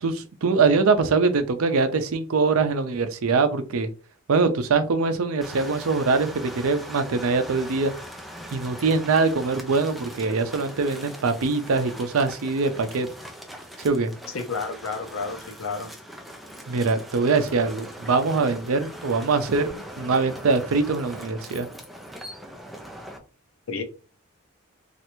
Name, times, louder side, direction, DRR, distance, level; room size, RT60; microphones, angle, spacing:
voice 1, 0.0-3.9 4.3-7.9 8.5-13.1 13.8-14.1 16.7-21.7, right 4 dB, 85° right, 10 dB, 0.5 m, -23 dB
sound 1, 5.4-23.2, equal, ahead, 0.4 m, -41 dB
voice 2, 14.3-15.9 23.7-23.8, left 4 dB, 75° left, 8 dB, 0.6 m, -31 dB
3.2 x 2.5 x 2.9 m, 0.35 s
head